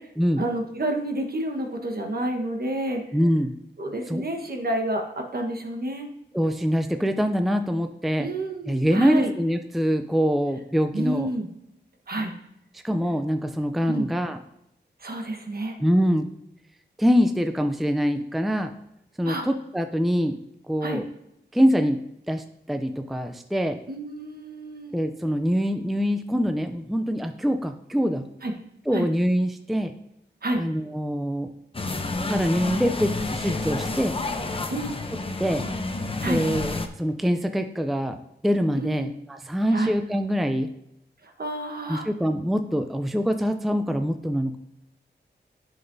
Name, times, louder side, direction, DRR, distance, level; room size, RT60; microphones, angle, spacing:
voice 1, 0.4-3.0 3.8-6.1 8.2-9.3 10.9-11.5 12.1-12.3 13.9-14.1 15.0-15.8 19.2-19.4 20.8-21.0 23.9-24.9 28.4-28.5 28.9-29.1 30.4-30.6 34.7-34.9 36.2-36.4 38.7-39.1 39.7-39.9 41.2-42.1, right 1 dB, 55° right, 3 dB, 1.3 m, -29 dB
voice 2, 3.1-3.5 4.1-4.2 6.3-8.3 8.7-11.3 12.8-14.4 15.8-16.3 17.0-18.7 19.2-20.4 20.7-21.1 21.5-22.0 22.3-23.8 24.9-28.3 28.9-29.9 30.6-31.5 32.3-34.2 35.4-35.7 36.3-38.2 38.4-40.7 41.9-44.6, equal, ahead, 7 dB, 0.4 m, -24 dB
sound 1, 31.7-36.9, left 3 dB, 30° left, 0.7 m, -29 dB
11.0 x 5.9 x 2.7 m, 0.80 s
wide cardioid pair, 90°, 18 cm